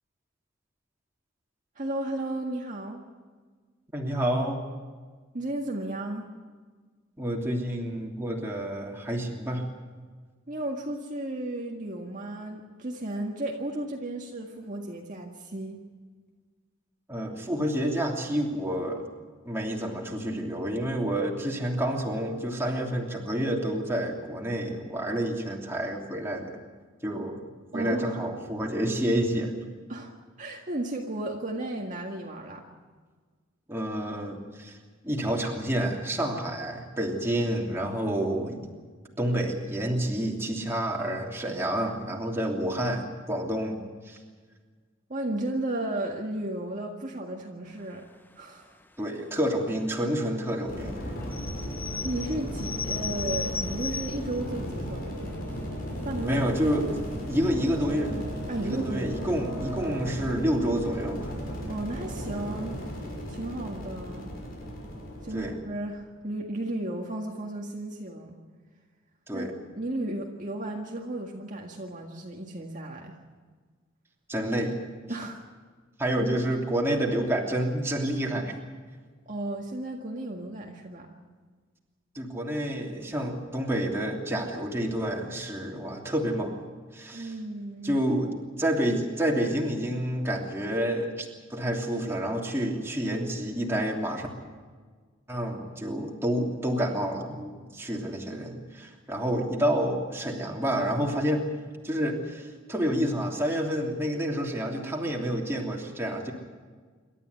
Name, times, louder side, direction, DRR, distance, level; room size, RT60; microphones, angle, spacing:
voice 1, 1.8-3.0 5.3-6.3 10.5-15.8 27.7-28.2 29.9-32.6 45.1-48.1 48.3-48.8 52.0-55.6 56.0-56.4 58.5-59.4 61.7-64.3 65.2-68.4 69.3-69.5 69.8-73.2 75.1-75.4 76.1-76.5 79.3-81.2 87.1-88.0, right 1 dB, 35° right, 0 dB, 1.9 m, -34 dB
voice 2, 3.9-4.7 7.2-9.7 17.1-19.1 19.4-26.5 27.0-27.4 27.7-29.5 33.7-34.8 35.0-38.6 39.2-43.8 44.1-44.2 49.0-51.0 56.2-56.9 57.3-58.2 58.6-61.3 65.3-65.5 69.3-69.5 74.3-74.8 76.0-78.5 82.1-86.5 86.9-87.3 87.8-88.3 88.6-94.3 95.3-101.5 101.8-106.3, equal, 10° right, -1 dB, 3.0 m, -29 dB
sound 1, 50.6-65.6, equal, 45° left, 6.3 m, -36 dB
sound 2, 51.2-54.4 55.0-55.1 55.2-55.7 56.3-56.7 57.1-57.2 57.4-57.5, left 5 dB, 10° left, 0.6 m, -36 dB
sound 3, 52.6-60.3, right 1 dB, 70° left, 7.4 m, -44 dB
27.5 x 13.0 x 9.6 m, 1.5 s
head